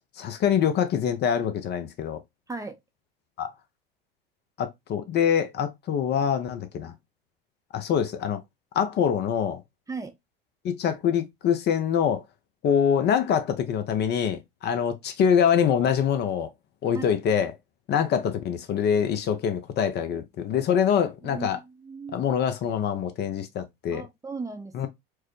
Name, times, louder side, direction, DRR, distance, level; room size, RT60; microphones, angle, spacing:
voice 1, 0.2-2.2 3.4-3.5 4.6-6.9 7.7-8.4 8.7-9.6 10.6-12.2 12.6-16.5 16.8-17.5 17.9-21.6 22.1-24.1 24.7-24.9, left 8 dB, 35° left, 0.6 m, -24 dB
voice 2, 2.5-2.8 9.9-10.1 16.9-17.2 21.2-22.3 23.9-24.9, right 4 dB, 10° right, 0.6 m, -37 dB
4.6 x 2.1 x 3.0 m
hypercardioid pair, 85°, 29 cm